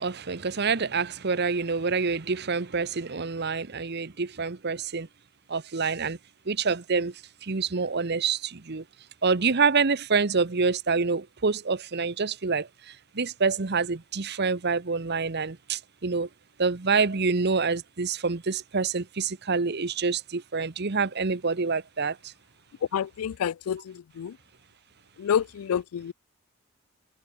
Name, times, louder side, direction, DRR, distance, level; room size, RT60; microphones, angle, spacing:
voice 1, 0.0-5.1 5.5-6.2 6.5-7.1 7.5-8.4 8.7-8.8 9.2-12.6 13.2-15.5 16.0-16.3 16.6-22.1, right 4 dB, 50° right, 1.0 m, -26 dB
voice 2, 22.9-24.4 25.2-26.1, left 8 dB, 85° left, 0.4 m, -28 dB
open air
head